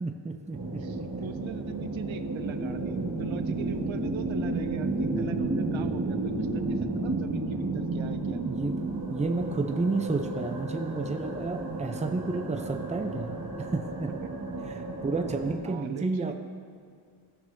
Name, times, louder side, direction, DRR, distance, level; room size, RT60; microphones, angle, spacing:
voice 1, 0.0-1.1 8.5-8.8 9.1-14.1 15.0-16.3, right 3 dB, 15° right, 5 dB, 0.5 m, -31 dB
sound 1, 0.5-15.6, right 2 dB, 40° right, 1.6 m, -32 dB
voice 2, 0.8-8.7 14.2-14.3 15.6-16.3, right 9 dB, 75° right, 10 dB, 0.6 m, -40 dB
15.5 x 6.1 x 2.7 m, 2.1 s
wide cardioid pair, 90°, 47 cm